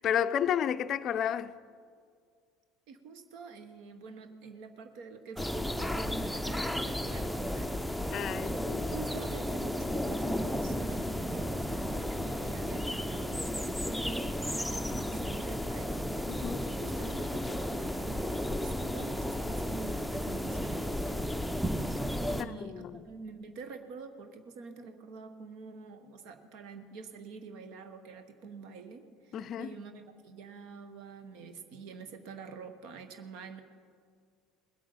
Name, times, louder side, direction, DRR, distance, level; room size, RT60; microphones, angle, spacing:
voice 1, 0.0-1.5 8.1-8.9 16.3-16.7 22.6-23.0 29.3-29.7, left 9 dB, 45° left, 0.4 m, -31 dB
voice 2, 2.9-21.4 22.2-33.6, right 4 dB, 60° right, 1.1 m, -46 dB
sound 1, 5.4-22.4, equal, ahead, 0.6 m, -33 dB
20.0 x 8.5 x 5.5 m
figure-of-eight pair, 65°, 0 cm